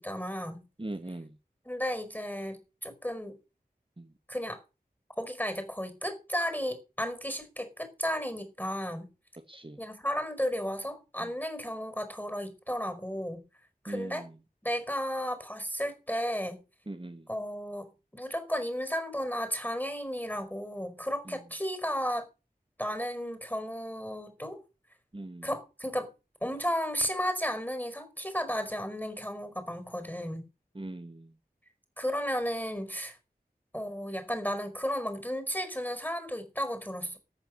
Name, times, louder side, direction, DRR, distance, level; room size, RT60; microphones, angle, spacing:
voice 1, 0.0-0.7 1.6-3.4 4.3-4.6 5.2-9.1 9.8-13.4 13.8-14.3 14.6-16.6 17.3-22.3 22.8-24.6 25.4-26.1 26.4-30.5 32.0-33.2 33.7-37.2, equal, 10° left, 5.0 m, -34 dB
voice 2, 0.8-1.4 4.0-4.1 9.5-9.8 11.2-11.3 13.9-14.3 16.9-17.2 21.3-21.4 25.1-25.5 30.7-31.3, right 2 dB, 30° right, 1.9 m, -40 dB
14.5 x 8.8 x 6.6 m
wide cardioid pair, 50°, 16 cm